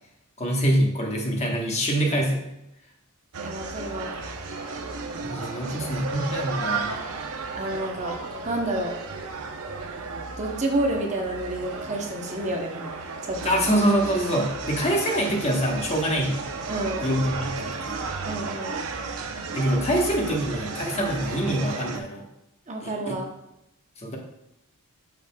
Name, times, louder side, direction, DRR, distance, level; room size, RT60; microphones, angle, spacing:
voice 1, 0.4-2.4 5.2-6.9 13.4-16.4 17.0-18.0 19.5-22.2 22.8-23.2 24.0-24.2, equal, 30° left, 1 dB, 1.1 m, -25 dB
sound 1, 3.3-22.0, right 4 dB, 65° right, 0.7 m, -34 dB
voice 2, 3.4-4.2 5.2-5.9 7.6-8.2 8.4-8.9 10.4-12.9 13.2-13.5 16.7-17.0 18.2-18.8 22.7-23.3, right 1 dB, 30° right, 2 dB, 0.8 m, -29 dB
8.7 x 6.4 x 2.3 m, 0.85 s
head